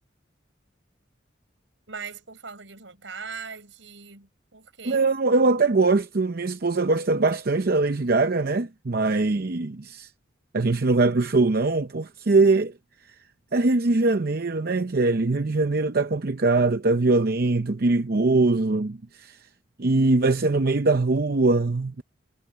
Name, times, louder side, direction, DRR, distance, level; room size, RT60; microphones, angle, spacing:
voice 1, 1.9-5.0, right 5 dB, 80° right, 5.3 m, -40 dB
voice 2, 4.8-10.1 10.5-12.7 13.5-19.4 19.8-22.0, right 3 dB, 55° right, 0.7 m, -22 dB
head